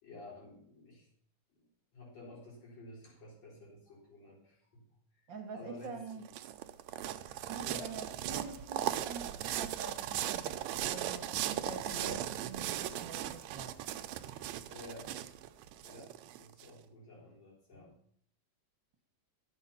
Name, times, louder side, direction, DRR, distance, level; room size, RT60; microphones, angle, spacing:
voice 1, 0.0-1.1 1.5-1.6 1.9-4.8 5.1-5.2 5.5-6.2 7.4-8.0 11.9-12.2 14.7-15.2 15.8-16.1 16.4-17.9, left 2 dB, 60° left, -5 dB, 5.4 m, -51 dB
voice 2, 5.3-6.2 7.4-13.8, right 4 dB, 50° right, 3 dB, 1.5 m, -46 dB
sound 1, 5.8-16.7, right 12 dB, 75° right, 1.8 m, -38 dB
12.0 x 8.1 x 5.6 m, 0.65 s
omnidirectional pair, 3.4 m